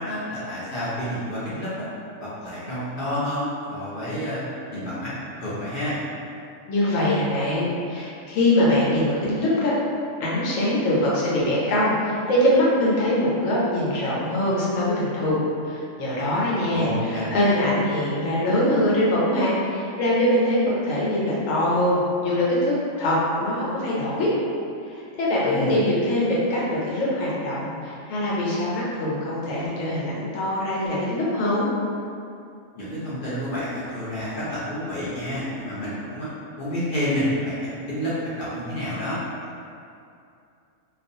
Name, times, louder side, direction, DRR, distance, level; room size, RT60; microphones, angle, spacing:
voice 1, 0.0-1.9 2.2-4.4 4.7-5.1 5.4-6.0 16.7-17.6 25.4-25.8 32.7-36.3 36.6-39.2, equal, 55° left, -9 dB, 0.6 m, -29 dB
voice 2, 6.7-9.7 10.2-15.4 15.6-16.9 17.3-24.3 24.9-31.7, left 1 dB, 80° left, -6 dB, 1.0 m, -23 dB
2.3 x 2.3 x 2.6 m, 2.5 s
omnidirectional pair, 1.3 m